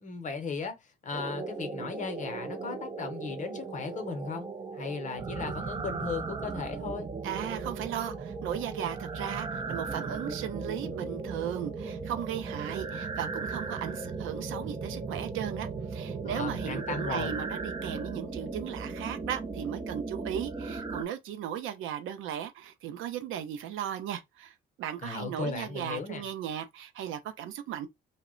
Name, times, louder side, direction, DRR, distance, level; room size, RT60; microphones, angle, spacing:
voice 1, 0.0-4.5 4.7-7.1 16.2-17.4 25.0-26.2, left 5 dB, 40° left, 0.7 m, -36 dB
sound 1, 1.1-21.0, right 4 dB, 25° right, 0.4 m, -37 dB
voice 2, 7.2-27.9, right 10 dB, 85° right, 0.5 m, -36 dB
2.1 x 2.0 x 3.6 m
cardioid pair, 90°, 20 cm